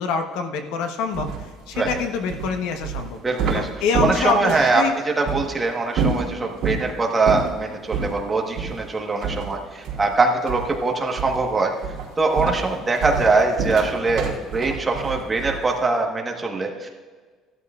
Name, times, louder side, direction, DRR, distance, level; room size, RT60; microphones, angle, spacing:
voice 1, 0.0-3.2 3.5-4.9, left 5 dB, 90° left, 5 dB, 1.1 m, -26 dB
sound 1, 1.1-4.8 5.2-5.4 5.9-6.9 7.2-7.6 7.9-8.1 8.5-8.8 9.2-10.2 10.5-10.8 11.2-11.5 11.8-15.7, right 5 dB, 65° right, 3.1 m, -27 dB
voice 2, 3.2-3.7 4.0-4.8 5.2-11.7 12.2-16.9, right 3 dB, 15° right, 1 dB, 1.4 m, -22 dB
16.5 x 12.5 x 2.5 m, 1.5 s
cardioid pair, 150°, 0 cm